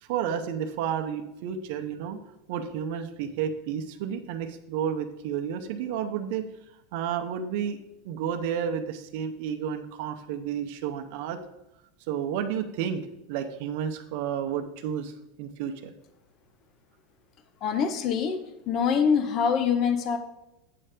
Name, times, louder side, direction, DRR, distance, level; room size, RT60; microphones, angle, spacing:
voice 1, 0.0-2.2 2.5-6.5 6.9-7.8 8.0-11.4 12.1-15.9, right 8 dB, 55° right, 6 dB, 0.7 m, -31 dB
voice 2, 17.6-18.4 18.7-20.2, left 6 dB, 35° left, 8 dB, 0.6 m, -24 dB
8.7 x 3.3 x 6.5 m, 0.88 s
supercardioid pair, 160°, 0 cm